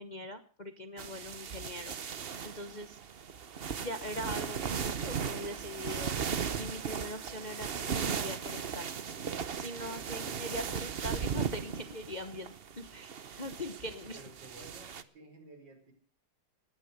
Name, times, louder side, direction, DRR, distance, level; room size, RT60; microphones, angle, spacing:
voice 1, 0.0-3.0 3.8-8.9 9.6-14.2, left 1 dB, 30° left, 8 dB, 0.8 m, -42 dB
sound 1, 1.0-15.0, right 7 dB, 50° right, 0.7 m, -37 dB
voice 2, 10.1-10.7 14.1-15.9, right 2 dB, 65° right, 3 dB, 5.3 m, -54 dB
19.5 x 10.5 x 6.6 m, 0.41 s
omnidirectional pair, 2.1 m